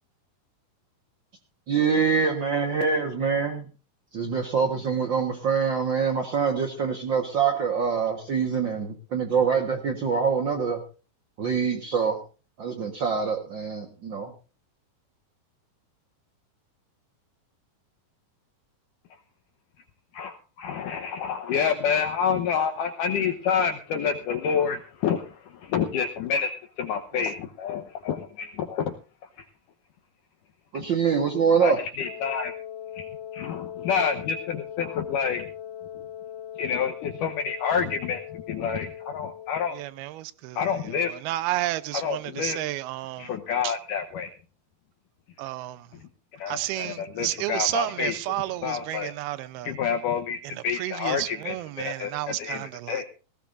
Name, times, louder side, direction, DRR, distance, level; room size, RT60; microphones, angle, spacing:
voice 1, 1.7-3.6 4.1-10.8 11.4-12.2 12.6-14.3 30.7-31.8, right 6 dB, 65° right, 1.1 m, -25 dB
voice 2, 20.1-28.9 29.4-29.5 30.7-30.9 31.6-32.5 32.9-35.5 36.6-39.8 40.6-41.1 41.9-42.6 43.2-44.3 46.3-48.2 48.6-49.1 49.6-53.0, left 7 dB, 70° left, 2.3 m, -28 dB
Wind instrument woodwind instrument, 32.0-39.9, left 10 dB, 85° left, 3.0 m, -40 dB
voice 3, 39.7-41.0 41.3-43.3 43.6-43.7 45.4-45.9 46.5-49.7 50.8-53.0, right 15 dB, 90° right, 2.7 m, -31 dB
19.0 x 16.0 x 2.6 m
omnidirectional pair, 4.3 m